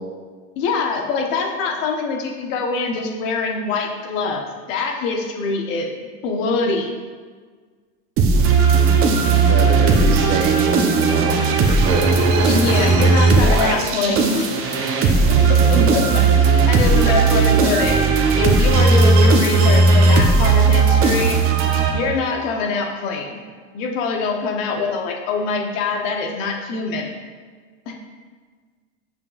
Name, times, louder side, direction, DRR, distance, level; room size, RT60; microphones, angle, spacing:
voice 1, 0.6-6.9 12.4-14.5 15.3-18.0 18.4-21.4 21.9-23.4 23.7-27.1 27.9-28.0, left 4 dB, 70° left, 2 dB, 1.1 m, -24 dB
sound 1, 8.2-22.4, right 4 dB, 35° right, 0.8 m, -16 dB
voice 2, 9.5-11.4 11.6-12.1 15.3-15.9, right 4 dB, 65° right, 3 dB, 1.0 m, -25 dB
7.2 x 5.7 x 2.4 m, 1.5 s
supercardioid pair, 120°, 40 cm